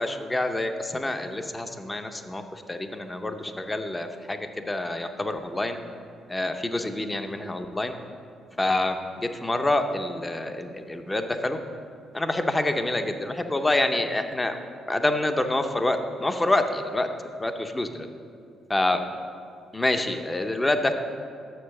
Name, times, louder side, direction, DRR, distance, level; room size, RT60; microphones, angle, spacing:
voice 1, 0.0-5.8 6.3-7.9 8.6-11.6 12.1-14.6 14.9-17.1 17.4-18.1 18.7-19.0 19.7-20.9, left 2 dB, 15° left, 7 dB, 0.6 m, -27 dB
6.7 x 6.7 x 6.5 m, 2.4 s
cardioid pair, 90°, 0 cm